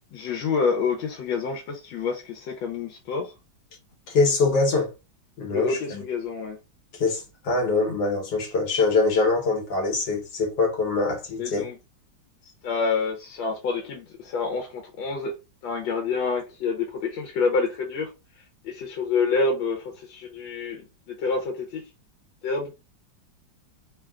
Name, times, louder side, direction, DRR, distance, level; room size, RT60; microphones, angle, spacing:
voice 1, 0.1-3.3 5.5-6.6 11.4-11.8 12.4-15.4 15.6-18.1 18.6-20.8 21.1-21.9 22.4-22.7, left 4 dB, 80° left, 1.4 m, -27 dB
voice 2, 4.1-4.9 5.4-6.0 7.0-11.7, left 3 dB, 65° left, 1.5 m, -23 dB
3.6 x 2.3 x 2.3 m
omnidirectional pair, 2.1 m